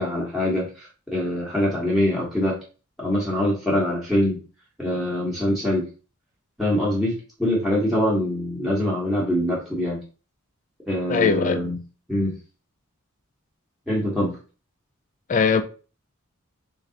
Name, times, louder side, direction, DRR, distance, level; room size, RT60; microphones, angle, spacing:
voice 1, 0.0-2.6 3.0-4.4 4.8-5.9 6.6-10.0 10.9-11.8 12.1-12.3 13.9-14.4, left 1 dB, ahead, 1.0 m, -24 dB
voice 2, 11.1-11.6 15.3-15.6, left 5 dB, 35° left, 0.4 m, -20 dB
3.2 x 2.7 x 3.8 m
head